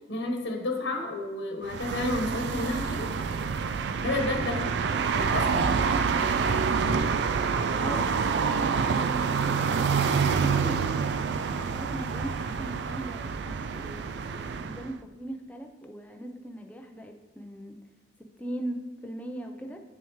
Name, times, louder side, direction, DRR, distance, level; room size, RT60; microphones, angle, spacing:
voice 1, 0.1-3.1 4.0-4.8 5.1-5.7, left 2 dB, 80° left, 3 dB, 1.1 m, -31 dB
sound 1, 1.6-14.9, right 5 dB, 70° right, 0.3 m, -27 dB
voice 2, 7.8-8.6 10.3-17.8 18.2-19.8, right 1 dB, 10° left, 3 dB, 0.6 m, -39 dB
8.6 x 6.8 x 3.1 m, 1.2 s
head